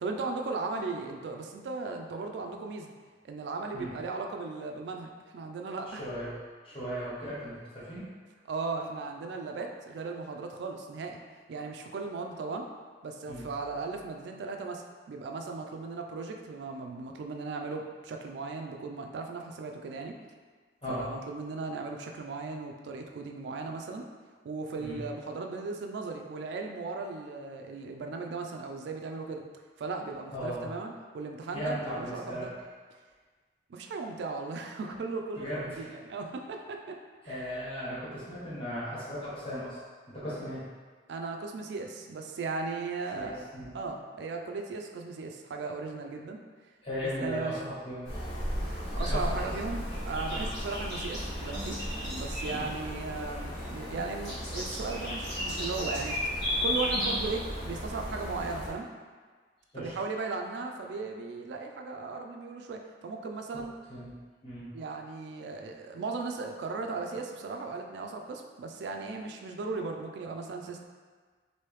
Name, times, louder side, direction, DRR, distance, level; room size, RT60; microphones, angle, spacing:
voice 1, 0.0-2.9 3.2-6.0 8.5-11.2 11.5-12.7 13.0-20.2 20.9-24.1 24.4-29.4 29.8-32.5 33.7-37.0 37.2-37.5 41.1-43.5 43.7-46.4 47.2-47.6 48.7-58.9 59.8-63.7 64.7-70.8, right 3 dB, 70° right, 3 dB, 0.3 m, -37 dB
voice 2, 5.9-6.4 6.6-8.1 13.3-13.4 20.8-21.1 24.8-25.0 30.3-30.7 31.5-32.5 35.3-35.8 37.2-39.8 40.1-40.7 43.1-43.7 46.8-48.1 49.0-49.4 50.3-50.4 52.5-52.7 59.7-59.9 63.5-63.6 63.9-64.1 64.4-64.7, equal, 30° left, -10 dB, 1.2 m, -37 dB
sound 1, 48.0-58.7, equal, 65° left, 1.3 m, -34 dB
sound 2, 48.1-57.7, left 1 dB, 5° left, 1.2 m, -50 dB
3.0 x 2.7 x 3.2 m, 1.5 s
head